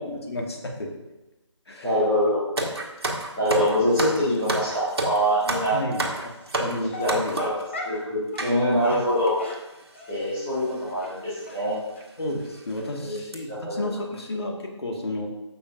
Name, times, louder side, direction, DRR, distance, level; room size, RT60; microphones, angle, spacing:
voice 1, 0.3-0.9 1.7-1.9 5.7-6.0 6.6-7.4 8.9-9.0 12.2-15.3, left 1 dB, 55° left, 1 dB, 1.9 m, -31 dB
voice 2, 1.8-2.4 3.4-5.8 7.0-7.5 7.8-9.3 10.1-11.8 13.0-13.2 13.5-13.8, equal, 5° left, -13 dB, 0.4 m, -24 dB
sound 1, 2.6-7.6 8.4-8.5 9.3-9.4 9.5-9.7 10.7-10.9 11.4-11.5 12.0-12.1 12.5-12.8 13.1-13.3, right 2 dB, 55° right, 1.6 m, -29 dB
Dog, 4.5-4.9 5.5-5.6 6.4-6.5 6.9-8.0 8.3-8.5 8.8-10.3 10.6-10.7 11.0-11.1 11.5-11.6 11.9-12.0 12.4-12.5 12.8-12.9, left 2 dB, 25° left, 0.9 m, -37 dB
15.0 x 5.5 x 2.6 m, 1.0 s
figure-of-eight pair, 165°, 16 cm